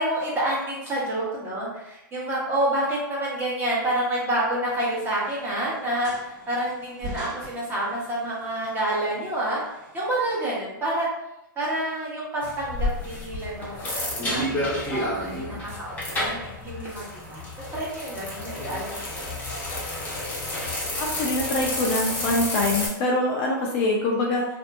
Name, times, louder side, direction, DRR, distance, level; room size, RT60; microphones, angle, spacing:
voice 1, 0.0-9.6 9.9-11.1 11.6-13.9 14.2-17.4 17.7-19.2, right 1 dB, 20° right, -6 dB, 1.0 m, -28 dB
sound 1, 4.7-10.3, right 2 dB, 40° right, 1.1 m, -44 dB
sound 2, 12.4-22.9, left 1 dB, 15° left, 0.8 m, -30 dB
voice 2, 21.0-24.5, left 2 dB, 40° left, -1 dB, 0.5 m, -24 dB
2.7 x 2.5 x 2.4 m, 0.90 s
hypercardioid pair, 125°, 11 cm